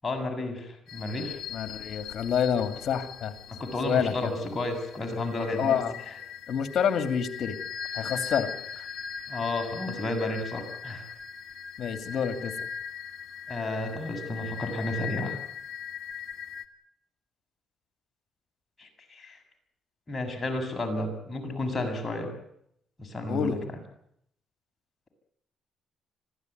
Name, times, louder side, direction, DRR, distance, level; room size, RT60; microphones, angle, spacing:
voice 1, 0.0-1.4 3.5-5.8 9.3-11.1 12.1-12.2 13.5-15.4 18.8-19.4 20.1-22.3 23.0-23.6, left 2 dB, 25° left, 3 dB, 7.3 m, -32 dB
sound 1, 0.9-16.7, left 7 dB, 75° left, 1.7 m, -40 dB
voice 2, 1.5-3.3 3.9-4.3 5.6-6.0 6.5-7.6 7.9-8.5 8.8-8.9 11.8-12.5 23.3-23.6, left 7 dB, 60° left, 8 dB, 2.7 m, -28 dB
25.5 x 16.0 x 9.5 m, 0.73 s
cardioid pair, 90°, 0 cm